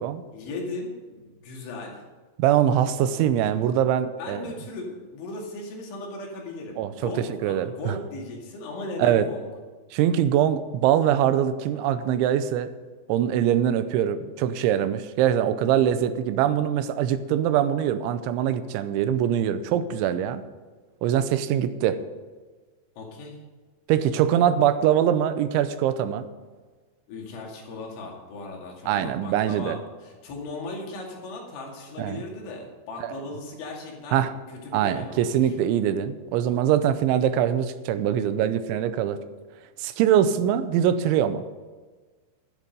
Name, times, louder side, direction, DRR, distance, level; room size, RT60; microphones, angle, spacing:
voice 1, 0.3-2.0 4.2-9.5 15.8-16.1 23.0-23.4 27.1-34.2 34.5-35.5, left 2 dB, 90° left, -1 dB, 4.8 m, -37 dB
voice 2, 2.4-4.5 6.8-7.1 7.4-8.0 9.0-9.3 9.9-12.7 13.1-20.4 21.0-22.0 23.9-26.2 28.9-29.8 32.0-32.2 33.0-33.1 34.1-34.3 34.7-39.2 39.8-41.4, right 10 dB, 90° right, 11 dB, 3.1 m, -23 dB
12.0 x 9.9 x 5.3 m, 1.4 s
omnidirectional pair, 5.3 m